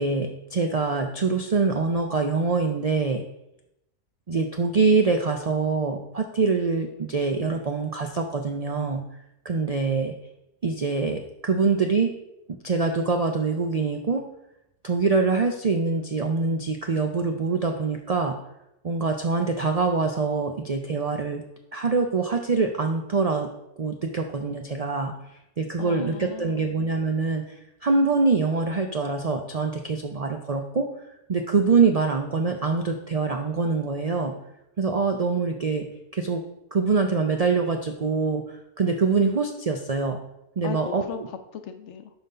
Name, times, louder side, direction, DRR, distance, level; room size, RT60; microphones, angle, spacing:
voice 1, 0.0-3.3 4.3-9.0 9.4-10.1 10.6-12.1 12.6-14.2 14.8-18.4 18.8-21.4 21.7-23.5 23.8-25.1 25.6-30.9 31.3-34.3 34.8-35.9 36.1-36.4 36.7-40.2 40.6-41.0, right 4 dB, 75° right, 4 dB, 0.3 m, -24 dB
voice 2, 25.8-26.7 40.6-42.1, left 7 dB, 60° left, 8 dB, 0.9 m, -37 dB
5.8 x 5.3 x 5.4 m, 0.84 s
omnidirectional pair, 1.5 m